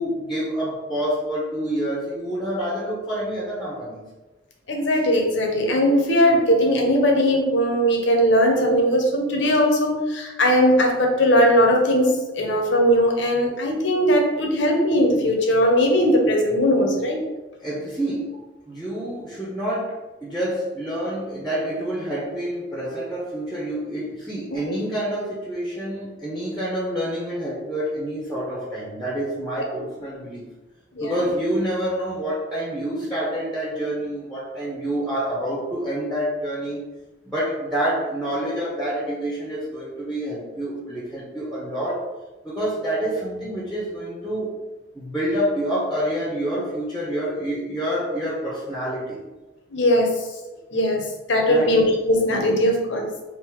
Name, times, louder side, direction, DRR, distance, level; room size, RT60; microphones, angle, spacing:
voice 1, 0.0-4.1 17.6-18.3 18.7-20.0 20.2-30.5 31.0-36.8 37.2-42.0 42.4-44.5 44.9-49.2 51.5-51.8, right 1 dB, ahead, -5 dB, 0.8 m, -27 dB
voice 2, 4.7-17.2 30.9-31.1 49.7-50.1 50.7-51.0 51.3-53.1, equal, 75° left, 2 dB, 0.8 m, -19 dB
3.7 x 2.6 x 4.5 m, 1.1 s
head